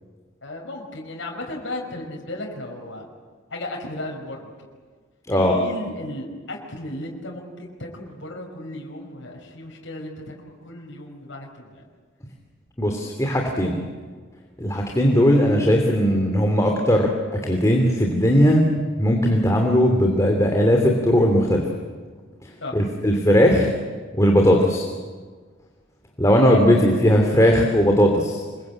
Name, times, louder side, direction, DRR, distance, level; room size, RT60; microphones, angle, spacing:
voice 1, 0.4-3.1 3.5-4.5 5.3-11.8 15.3-15.4 22.6-22.8 26.4-26.6, left 1 dB, 75° left, 0 dB, 5.5 m, -35 dB
voice 2, 12.8-13.8 14.6-18.7 19.0-21.6 22.7-23.7 24.1-24.8 26.2-28.4, equal, 15° left, 1 dB, 2.9 m, -18 dB
26.5 x 23.0 x 8.7 m, 1.5 s
head